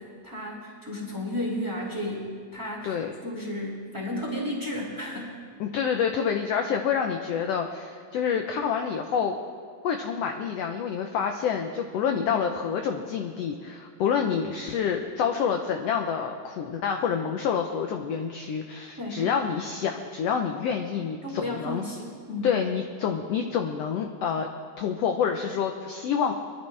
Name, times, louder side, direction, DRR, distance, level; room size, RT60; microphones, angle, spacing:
voice 1, 0.0-5.3 12.1-12.3 19.0-19.2 21.2-22.5, left 1 dB, 5° right, -3 dB, 2.2 m, -33 dB
voice 2, 5.6-9.4 9.8-21.8 22.4-24.5 24.8-26.3, left 7 dB, 80° left, 4 dB, 1.4 m, -27 dB
23.5 x 11.5 x 3.3 m, 2.1 s
omnidirectional pair, 3.7 m